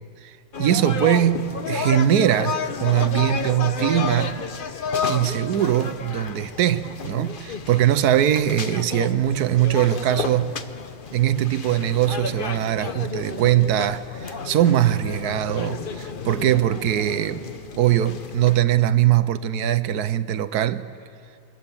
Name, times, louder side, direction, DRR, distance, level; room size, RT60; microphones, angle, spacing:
voice 1, 0.2-4.4 5.1-10.6 11.1-17.4 17.8-20.9, right 11 dB, 65° right, 1.1 m, -21 dB
sound 1, 0.5-18.6, left 5 dB, 50° left, 0.6 m, -31 dB
26.0 x 23.5 x 7.2 m
omnidirectional pair, 2.0 m